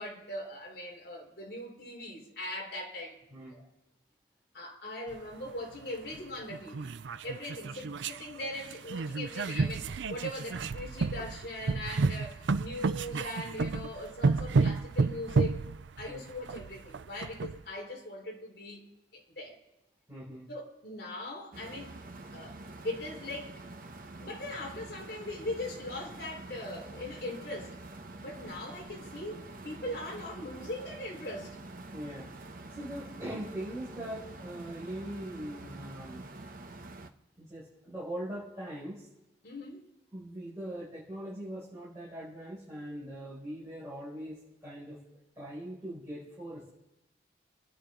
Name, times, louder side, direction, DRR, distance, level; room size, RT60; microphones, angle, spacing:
voice 1, 0.0-3.2 3.5-3.7 4.5-6.9 7.2-15.6 16.0-18.8 19.1-19.6 20.5-21.9 22.3-22.6 22.8-23.6 24.2-27.8 28.2-31.6 39.4-39.9, left 1 dB, 60° left, 4.1 m, -40 dB
sound 1, 5.1-5.2 6.1-6.2 6.5-8.3 8.6-17.6, right 4 dB, 90° right, 0.5 m, -31 dB
voice 2, 20.1-20.5 31.9-36.2 37.4-39.1 40.1-45.0 45.4-46.7, right 1 dB, 15° right, 5.9 m, -41 dB
sound 2, 21.5-37.1, right 2 dB, 50° right, 1.1 m, -46 dB
29.0 x 11.0 x 3.8 m
head